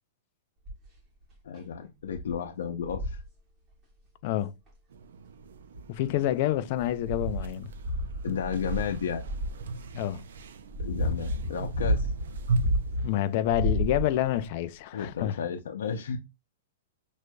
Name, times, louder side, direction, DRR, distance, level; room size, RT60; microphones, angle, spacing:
sound 1, 0.6-1.0 1.5-1.6 2.1-2.3 2.8-3.3 4.7-4.8 5.6-6.2 6.7-9.6 10.3-13.1 13.4-14.4 15.2-15.3, equal, 20° right, 1.2 m, -31 dB
voice 1, 1.4-3.2 8.2-9.2 10.8-12.1 14.9-16.2, left 7 dB, 85° left, 0.6 m, -33 dB
voice 2, 4.2-4.5 5.9-7.7 9.9-10.2 13.0-15.4, left 12 dB, 35° left, 0.4 m, -28 dB
sound 2, 4.9-14.5, right 3 dB, 80° right, 0.5 m, -38 dB
6.3 x 2.5 x 2.2 m
supercardioid pair, 170°, 0 cm